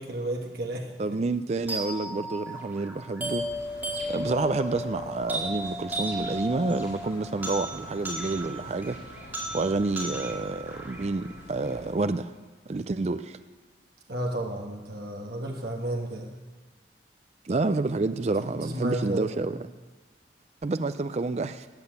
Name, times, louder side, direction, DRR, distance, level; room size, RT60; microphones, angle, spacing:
voice 1, 0.0-0.9 14.1-16.3 18.4-19.3, right 1 dB, 55° right, 1 dB, 1.5 m, -32 dB
voice 2, 1.0-3.4 4.1-9.0 9.5-12.3 12.7-13.4 17.5-19.7 20.6-21.7, right 3 dB, 35° right, 11 dB, 0.4 m, -29 dB
sound 1, 1.7-11.7, right 1 dB, 10° right, 2.4 m, -35 dB
sound 2, 3.2-11.9, left 1 dB, 70° left, 3.4 m, -47 dB
14.0 x 8.8 x 8.1 m, 1.3 s
head